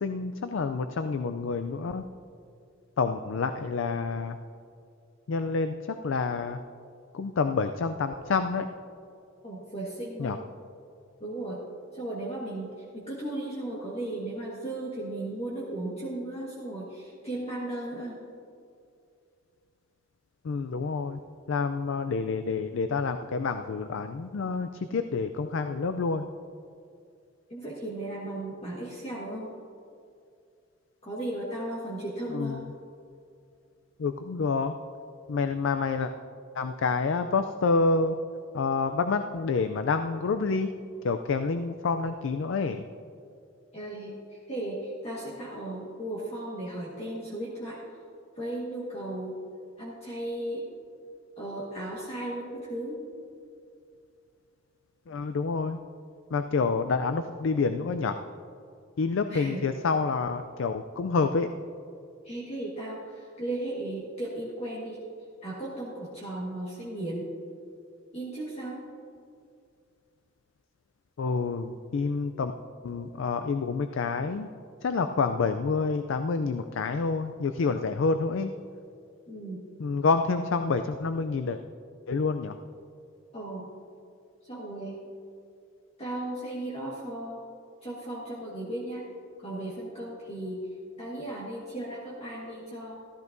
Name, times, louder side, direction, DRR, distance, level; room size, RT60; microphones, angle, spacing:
voice 1, 0.0-2.0 3.0-4.4 5.3-5.7 6.0-6.6 7.1-8.7 10.2-10.4 20.4-21.2 21.5-26.3 32.3-32.7 34.0-34.7 35.3-36.1 36.5-38.2 38.5-40.7 41.0-42.8 55.1-55.8 56.3-58.2 59.0-61.5 71.2-72.5 72.8-74.5 74.8-78.5 79.8-81.6 82.1-82.6, left 4 dB, 60° left, 9 dB, 0.4 m, -28 dB
voice 2, 9.4-10.4 11.2-11.6 11.9-18.2 27.5-29.5 31.0-32.6 43.7-47.8 48.4-49.4 49.8-50.7 51.4-53.1 59.3-59.6 62.2-65.0 65.4-67.3 68.1-68.8 79.2-79.7 83.3-83.7 84.4-85.0 86.0-87.4 87.8-89.0 89.4-90.7 91.0-93.0, right 1 dB, 30° left, -6 dB, 1.5 m, -36 dB
14.0 x 13.5 x 2.6 m, 2.4 s
head